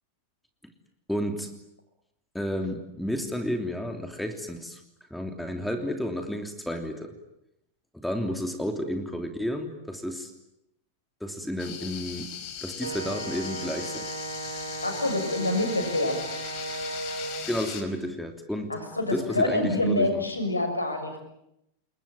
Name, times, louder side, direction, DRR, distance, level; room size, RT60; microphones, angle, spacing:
voice 1, 1.1-1.5 2.3-4.8 5.1-7.2 7.9-10.3 11.2-12.3 12.6-14.1 17.5-18.7 19.1-20.2, equal, 5° left, 5 dB, 3.2 m, -31 dB
sound 1, 11.6-17.8, left 8 dB, 40° left, 4.3 m, -39 dB
Wind instrument woodwind instrument, 12.8-17.4, right 3 dB, 80° right, 2.9 m, -36 dB
voice 2, 14.8-16.2 18.7-21.2, left 1 dB, 80° left, 6 dB, 6.6 m, -26 dB
29.0 x 21.5 x 9.1 m, 0.83 s
figure-of-eight pair, 90°, 0 cm